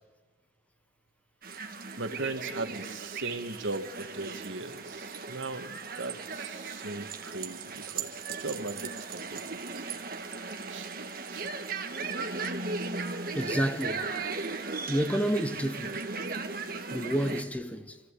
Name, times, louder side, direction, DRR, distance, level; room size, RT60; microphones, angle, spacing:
sound 1, 1.4-17.4, right 4 dB, 50° right, 1.7 m, -37 dB
voice 1, 2.0-10.1 10.7-10.9 11.3-11.4 16.5-16.6, right 2 dB, 80° right, 1.8 m, -38 dB
voice 2, 13.3-14.1 14.9-16.1 16.9-18.0, right 1 dB, 5° left, 1.0 m, -30 dB
27.5 x 15.0 x 8.4 m
head